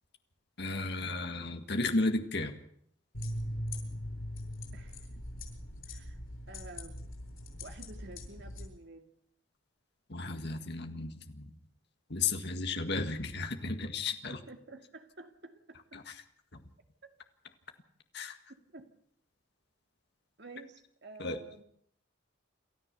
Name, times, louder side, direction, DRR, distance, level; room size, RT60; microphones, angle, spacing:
voice 1, 0.6-2.6 10.1-11.5 12.1-14.4 15.9-16.1 16.5-16.6 18.1-18.4 21.2-21.4, left 3 dB, 55° left, 6 dB, 1.8 m, -34 dB
sound 1, 3.1-8.7, left 1 dB, 85° left, 7.9 m, -41 dB
voice 2, 4.7-5.2 5.9-6.2 6.5-7.0 7.6-9.1 14.5-16.0 17.0-17.1 18.5-18.9 20.4-21.6, right 2 dB, 55° right, 6 dB, 2.4 m, -51 dB
28.5 x 13.5 x 6.9 m, 0.66 s
head